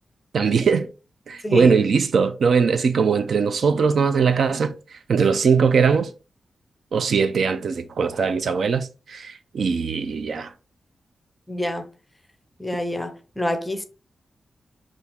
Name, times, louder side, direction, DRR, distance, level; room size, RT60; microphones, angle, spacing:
voice 1, 0.3-0.9 1.3-6.1 6.9-10.5, right 5 dB, 65° right, 0.4 m, -20 dB
voice 2, 1.4-1.8 11.5-11.9 12.6-13.8, left 1 dB, 5° left, 0.5 m, -27 dB
5.6 x 2.4 x 3.4 m
wide cardioid pair, 150°, 0 cm